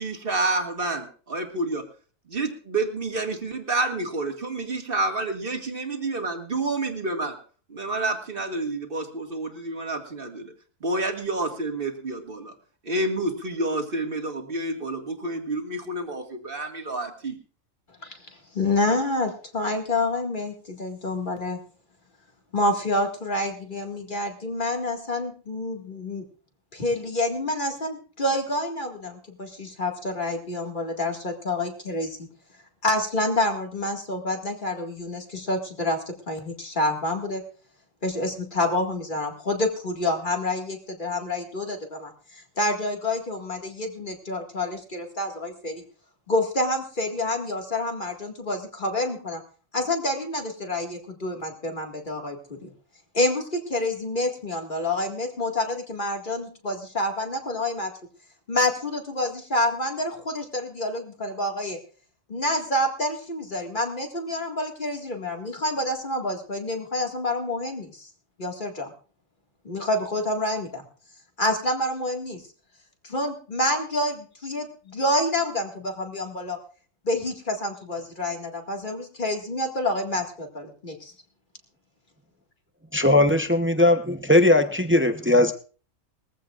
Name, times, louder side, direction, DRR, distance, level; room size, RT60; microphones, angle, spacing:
voice 1, 0.0-1.9 2.3-7.4 7.7-10.5 10.8-12.5 12.8-17.4, right 2 dB, 40° right, 3 dB, 2.2 m, -29 dB
voice 2, 18.0-21.6 22.5-26.3 26.7-32.2 32.8-37.4 38.0-45.8 46.3-49.4 49.7-52.7 53.1-57.9 58.5-61.8 62.3-68.1 68.4-68.9 69.6-70.8 71.4-72.4 73.0-76.6 77.0-81.1, left 1 dB, 35° left, 2 dB, 2.2 m, -28 dB
voice 3, 82.9-85.5, left 1 dB, 10° right, 7 dB, 0.7 m, -19 dB
21.0 x 15.0 x 2.5 m, 0.40 s
omnidirectional pair, 1.4 m